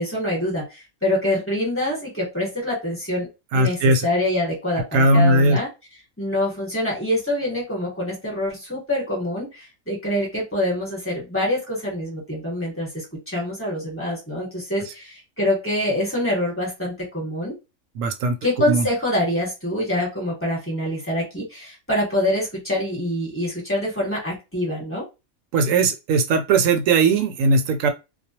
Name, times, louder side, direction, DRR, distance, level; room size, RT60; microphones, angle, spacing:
voice 1, 0.0-3.3 3.5-5.7 6.2-17.5 18.4-25.0, left 1 dB, 10° left, 1.1 m, -25 dB
voice 2, 3.5-4.1 4.9-5.6 18.0-18.4 18.7-18.9 25.5-27.9, right 3 dB, 75° right, 0.9 m, -18 dB
2.3 x 2.1 x 2.8 m
omnidirectional pair, 1.5 m